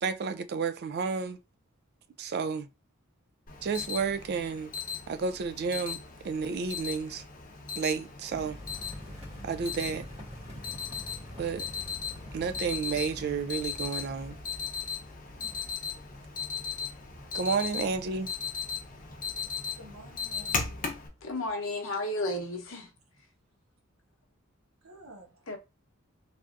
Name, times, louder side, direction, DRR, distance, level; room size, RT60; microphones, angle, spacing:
voice 1, 0.0-1.4 2.2-2.7 3.6-4.7 5.1-6.0 6.2-7.2 7.8-8.6 9.4-10.1 11.4-11.6 12.3-14.4 17.3-18.3, right 5 dB, 50° right, 0.3 m, -31 dB
Alarm, 3.5-21.1, left 6 dB, 40° left, 0.7 m, -38 dB
sound 1, 8.3-21.5, equal, 35° right, 1.4 m, -47 dB
voice 2, 18.7-21.0 24.8-25.5, equal, 90° right, 1.1 m, -53 dB
voice 3, 21.2-22.9 25.5-25.6, left 1 dB, 75° left, 0.8 m, -33 dB
3.4 x 2.6 x 2.4 m
head